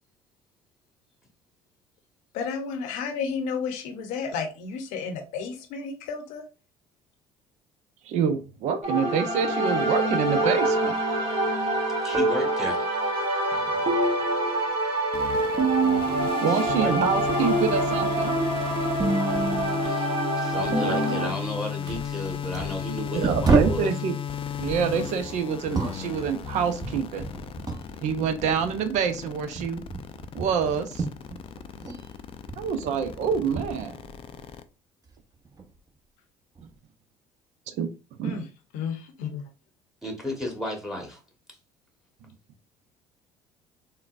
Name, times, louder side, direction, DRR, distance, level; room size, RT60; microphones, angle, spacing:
voice 1, 2.3-6.4 38.2-38.5 38.7-39.4, left 5 dB, 70° left, 5 dB, 0.7 m, -32 dB
voice 2, 8.1-11.0 16.4-18.3 23.1-24.2 24.6-27.2 28.0-29.8 30.3-31.0 32.6-34.0 37.7-37.9 38.2-38.5, right 7 dB, 60° right, 9 dB, 0.5 m, -27 dB
sound 1, 8.8-21.3, right 1 dB, 40° right, 1.2 m, -25 dB
voice 3, 12.0-12.9 16.5-16.9 19.8-20.1 20.4-23.9 40.0-41.2, left 1 dB, 5° right, 1 dB, 1.2 m, -33 dB
sound 2, 15.1-34.6, left 8 dB, 40° left, 0.4 m, -35 dB
sound 3, 21.9-23.9 24.6-27.9 28.2-32.0 32.3-34.6 35.1-35.8 36.6-36.7, right 3 dB, 25° right, 0.9 m, -31 dB
3.8 x 2.2 x 2.4 m, 0.33 s
hypercardioid pair, 60°, 14 cm